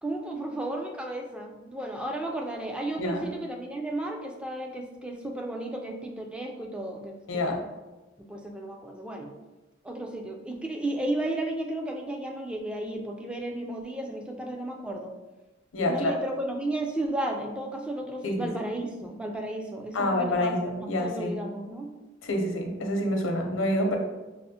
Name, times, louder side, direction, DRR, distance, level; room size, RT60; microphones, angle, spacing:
voice 1, 0.0-7.6 8.2-9.3 9.8-15.1 15.9-21.9, right 1 dB, 5° right, 2 dB, 0.3 m, -34 dB
voice 2, 7.3-7.6 15.7-16.1 18.2-18.4 19.9-21.3 22.2-24.0, left 1 dB, 85° left, 2 dB, 0.6 m, -27 dB
5.4 x 2.0 x 2.7 m, 1.1 s
head